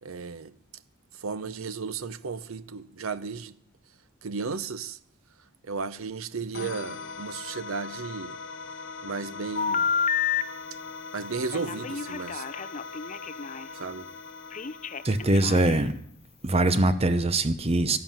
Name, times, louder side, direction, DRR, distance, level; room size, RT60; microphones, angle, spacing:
voice 1, 0.0-0.5 1.2-3.6 4.2-5.0 5.6-8.4 9.0-9.9 11.1-12.4 13.7-14.1, right 4 dB, 70° right, 0.7 m, -34 dB
sound 1, 6.5-16.0, left 4 dB, 55° left, 1.3 m, -41 dB
Telephone, 9.6-10.4 11.5-13.7 14.5-16.0, left 7 dB, 35° left, 0.6 m, -29 dB
voice 2, 15.0-15.9 16.4-18.0, right 2 dB, 30° right, 0.7 m, -22 dB
12.5 x 11.0 x 8.9 m
head